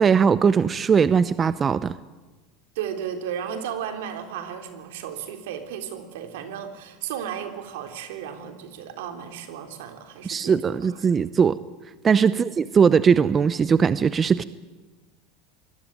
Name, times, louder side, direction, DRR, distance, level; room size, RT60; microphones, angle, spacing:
voice 1, 0.0-1.9 10.3-11.6 12.0-14.4, right 6 dB, 25° right, 15 dB, 0.8 m, -19 dB
voice 2, 2.8-10.8 12.3-12.5, right 8 dB, 80° right, 6 dB, 3.7 m, -34 dB
25.5 x 20.5 x 9.2 m, 1.2 s
supercardioid pair, 110°, 0 cm